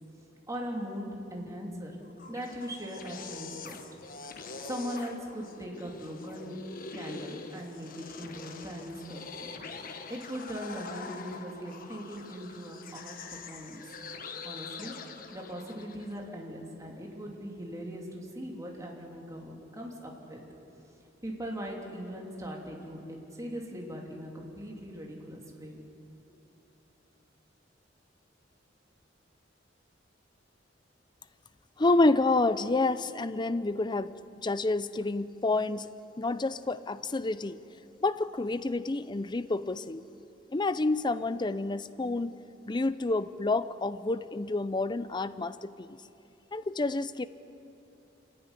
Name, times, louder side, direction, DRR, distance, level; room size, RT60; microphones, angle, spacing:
voice 1, 0.5-1.9 2.3-3.8 4.4-6.6 6.9-9.5 10.1-13.8 14.4-14.9 15.3-20.4 21.2-25.8, equal, 20° right, -1 dB, 3.3 m, -40 dB
sound 1, 2.0-16.2, left 4 dB, 50° left, 1.4 m, -44 dB
voice 2, 31.8-35.9 36.2-37.6 38.0-40.0 40.5-42.3 42.7-46.0 46.5-47.3, left 2 dB, 25° left, 14 dB, 0.6 m, -29 dB
26.0 x 15.0 x 9.9 m, 2.9 s
head